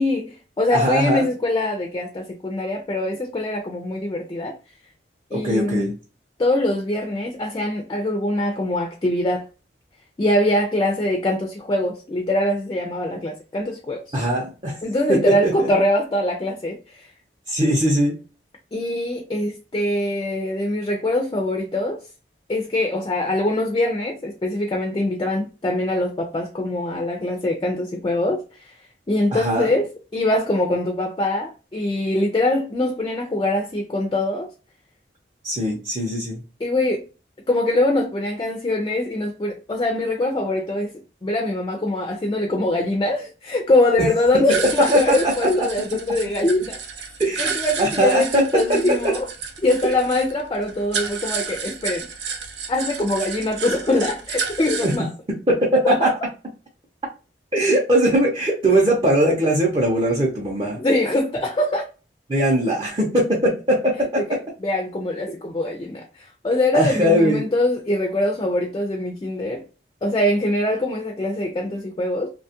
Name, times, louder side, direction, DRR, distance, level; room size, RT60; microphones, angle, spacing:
voice 1, 0.0-4.6 5.3-6.0 6.4-9.5 10.2-14.0 14.8-17.1 18.7-22.0 22.5-28.7 29.1-29.9 30.1-34.5 36.6-37.0 37.5-46.8 47.4-49.3 49.6-52.1 52.7-55.1 55.8-56.1 60.8-61.9 64.3-69.6 70.0-72.3, left 1 dB, 25° left, 0.3 m, -23 dB
voice 2, 0.7-1.2 5.3-5.9 14.1-14.8 15.1-15.7 17.5-18.2 29.3-29.7 35.4-36.4 44.8-45.7 47.2-47.5 47.8-49.1 49.8-49.9 54.8-54.9 55.5-56.1 57.5-60.8 62.3-64.4 66.7-67.4, right 1 dB, 30° right, 0.6 m, -20 dB
sound 1, 44.5-55.0, right 6 dB, 80° right, 0.6 m, -31 dB
2.8 x 2.2 x 2.8 m
head